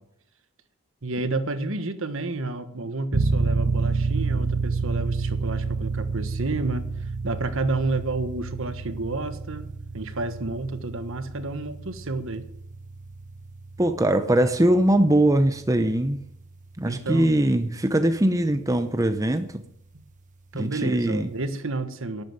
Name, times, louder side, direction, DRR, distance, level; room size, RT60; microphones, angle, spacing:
voice 1, 1.0-12.4 16.8-17.3 19.9-20.0 20.5-22.2, right 3 dB, 60° right, 11 dB, 1.3 m, -30 dB
sound 1, 3.1-17.5, right 4 dB, 35° right, 1.1 m, -30 dB
voice 2, 13.8-16.2 16.8-19.6 20.5-21.3, right 1 dB, 15° right, 9 dB, 0.7 m, -21 dB
12.0 x 8.9 x 9.1 m, 0.74 s
head